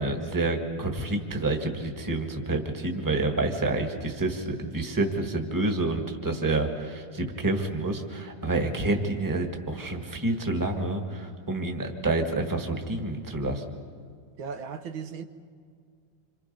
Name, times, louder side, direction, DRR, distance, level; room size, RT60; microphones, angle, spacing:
voice 1, 0.0-13.6, right 2 dB, 10° right, 1.4 m, -28 dB
voice 2, 14.4-15.2, right 6 dB, 70° right, 1.7 m, -36 dB
27.0 x 26.0 x 5.4 m
omnidirectional pair, 2.4 m